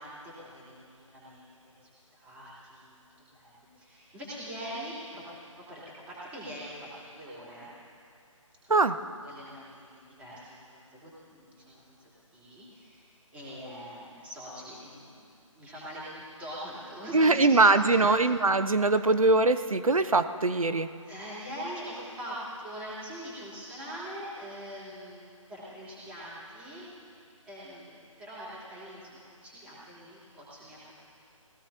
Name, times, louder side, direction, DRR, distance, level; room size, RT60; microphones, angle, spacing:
voice 1, 0.0-5.2 5.6-7.7 8.6-8.7 9.2-17.4 17.8-18.1 21.0-26.9 27.4-31.0, equal, 10° right, -9 dB, 3.6 m, -43 dB
voice 2, 17.1-20.9, right 3 dB, 80° right, 11 dB, 0.8 m, -22 dB
21.5 x 17.0 x 2.9 m, 2.4 s
figure-of-eight pair, 150°, 17 cm